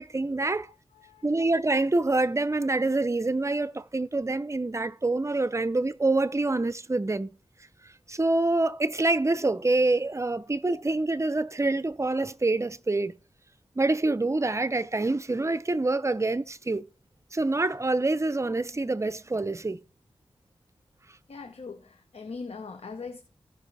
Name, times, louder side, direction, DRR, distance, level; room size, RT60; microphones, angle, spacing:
voice 1, 0.0-0.7 1.2-7.3 8.1-13.1 13.8-16.8 17.3-19.8, right 2 dB, 25° right, 0.6 m, -26 dB
voice 2, 0.6-1.2 21.3-23.2, left 4 dB, 70° left, 0.9 m, -41 dB
16.5 x 5.4 x 3.4 m
cardioid pair, 50°, 11 cm